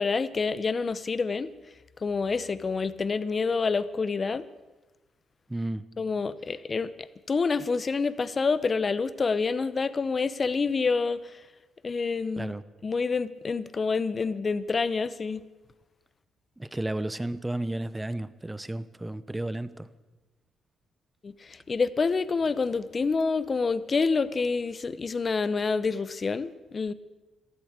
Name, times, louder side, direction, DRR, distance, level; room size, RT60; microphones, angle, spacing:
voice 1, 0.0-1.5 2.0-4.4 6.0-11.4 11.8-12.5 12.8-15.4 21.2-26.9, left 4 dB, 35° left, 16 dB, 0.8 m, -27 dB
voice 2, 5.5-5.8 12.4-12.6 16.6-19.9, right 1 dB, 10° right, 16 dB, 0.8 m, -33 dB
13.5 x 12.5 x 8.1 m, 1.2 s
cardioid pair, 90°, 0 cm